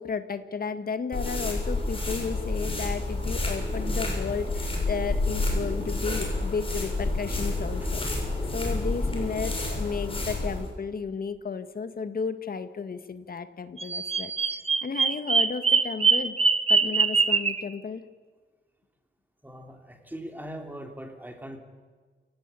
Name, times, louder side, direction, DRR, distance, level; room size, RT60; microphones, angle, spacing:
voice 1, 0.0-8.3 8.5-14.3 14.8-16.4 16.7-18.0, left 5 dB, 50° left, 10 dB, 1.8 m, -33 dB
sound 1, 1.1-10.7, left 2 dB, 30° left, 6.8 m, -29 dB
Bird vocalization bird call bird song, 13.8-17.6, right 4 dB, 30° right, 1.3 m, -23 dB
voice 2, 19.4-21.6, right 1 dB, 10° right, 4 dB, 3.4 m, -40 dB
28.5 x 18.0 x 8.5 m, 1.5 s
wide cardioid pair, 145°, 19 cm